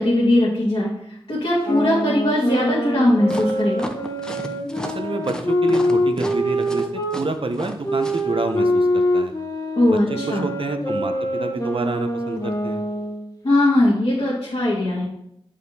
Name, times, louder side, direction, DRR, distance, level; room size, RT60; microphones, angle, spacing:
voice 1, 0.0-3.9 9.8-10.4 13.4-15.1, left 1 dB, 75° left, -8 dB, 1.8 m, -19 dB
sound 1, 1.6-7.2 7.8-13.3, equal, 35° left, 1.0 m, -24 dB
sound 2, 3.3-8.2, equal, 5° left, 0.8 m, -33 dB
voice 2, 4.8-6.9 7.1-9.3 9.9-10.0 10.3-12.8, right 2 dB, 65° right, 7 dB, 0.7 m, -28 dB
7.7 x 4.9 x 2.8 m, 0.76 s
wide cardioid pair, 45°, 10 cm